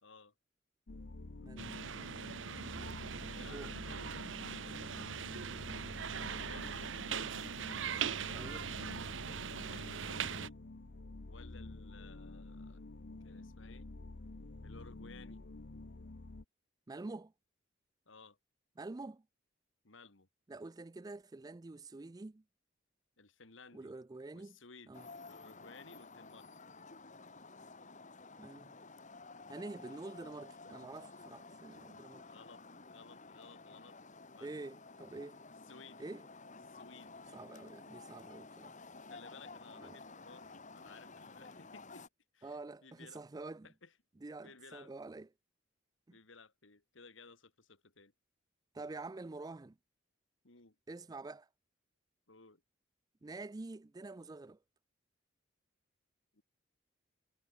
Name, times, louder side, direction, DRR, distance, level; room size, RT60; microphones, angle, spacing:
voice 1, 0.0-0.3 3.2-4.2 6.1-6.9 7.9-8.9 9.7-10.6 11.3-12.8 13.2-13.9 14.6-15.4 18.1-18.4 19.8-20.3 23.2-23.9 24.3-25.0 25.2-26.5 32.2-34.0 34.3-34.7 35.7-36.1 36.7-37.2 39.0-42.0 42.3-43.2 43.6-43.9 44.4-44.9 46.1-48.1 50.4-50.8 52.3-52.6 56.3-56.4, left 4 dB, 75° left, 2.4 m, -58 dB
sound 1, 0.9-16.4, left 2 dB, 60° left, 0.9 m, -49 dB
voice 2, 1.4-2.2 2.7-3.0 3.5-3.7 6.2-6.4 8.3-8.6 16.9-17.3 18.8-19.2 20.5-22.4 23.7-24.6 24.9-25.1 28.4-28.7 29.5-32.3 34.4-35.4 36.0-36.3 37.3-38.8 39.8-40.0 42.4-43.7 44.2-45.3 48.7-49.8 50.9-51.5 53.2-54.6, right 3 dB, 20° right, 0.4 m, -47 dB
sound 2, 1.6-10.5, right 7 dB, 70° right, 0.9 m, -41 dB
sound 3, 24.9-42.1, left 3 dB, 40° left, 3.4 m, -53 dB
head